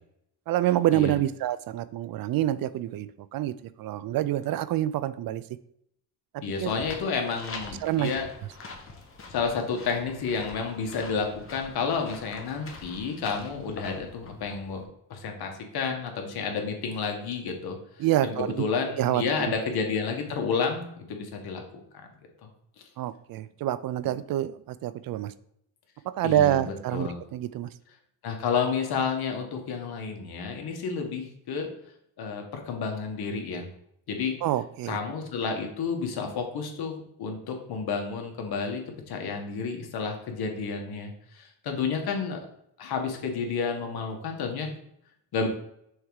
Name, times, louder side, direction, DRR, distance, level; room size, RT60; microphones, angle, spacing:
voice 1, 0.5-3.5 3.8-5.4 6.3-6.7 7.8-8.1 18.0-18.5 19.0-19.2 23.0-25.3 26.2-27.7 34.4-35.0, right 13 dB, 55° right, 16 dB, 0.5 m, -27 dB
voice 2, 6.4-8.2 9.3-14.8 15.1-21.6 22.4-22.5 26.2-27.2 28.2-31.7 32.2-33.7 34.1-34.4 34.9-42.4 42.8-44.7 45.3-45.5, left 5 dB, 60° left, 3 dB, 1.5 m, -30 dB
sound 1, 6.5-14.8, left 3 dB, 30° left, 1.2 m, -45 dB
6.4 x 3.5 x 4.8 m, 0.73 s
cardioid pair, 100°, 42 cm